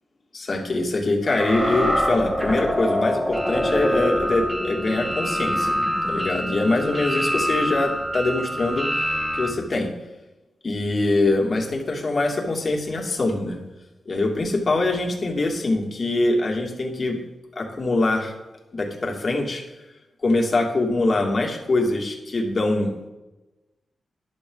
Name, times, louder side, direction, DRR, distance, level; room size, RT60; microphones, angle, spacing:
voice 1, 0.3-5.8 6.0-9.9 10.6-13.6 14.1-17.2 17.6-18.3 18.7-19.6 20.2-22.9, left 2 dB, 45° left, 2 dB, 2.6 m, -23 dB
sound 1, 1.3-9.5, equal, 10° right, 2.0 m, -25 dB
12.5 x 11.0 x 4.1 m, 1.1 s
cardioid pair, 85°, 0 cm